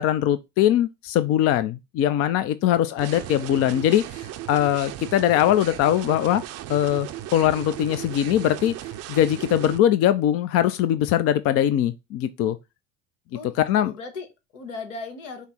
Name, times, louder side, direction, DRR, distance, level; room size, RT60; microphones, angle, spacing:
voice 1, 0.0-6.4 6.7-8.7 9.1-12.6 13.7-13.9, left 11 dB, 40° left, 0.4 m, -21 dB
voice 2, 2.8-3.7 13.3-15.5, left 4 dB, 80° left, 1.2 m, -39 dB
sound 1, 3.0-9.8, right 13 dB, 40° right, 0.5 m, -36 dB
5.6 x 2.0 x 4.2 m
hypercardioid pair, 75°, 38 cm